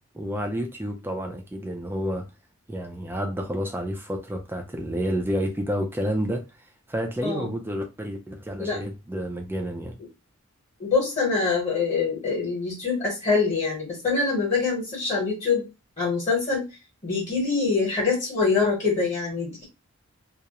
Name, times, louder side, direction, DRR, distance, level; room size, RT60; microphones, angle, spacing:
voice 1, 0.1-2.3 2.7-10.0, equal, 10° right, 0.3 m, -30 dB
voice 2, 10.8-15.7 16.0-16.8 17.0-19.7, left 4 dB, 30° left, 0.9 m, -24 dB
2.3 x 2.0 x 2.8 m
head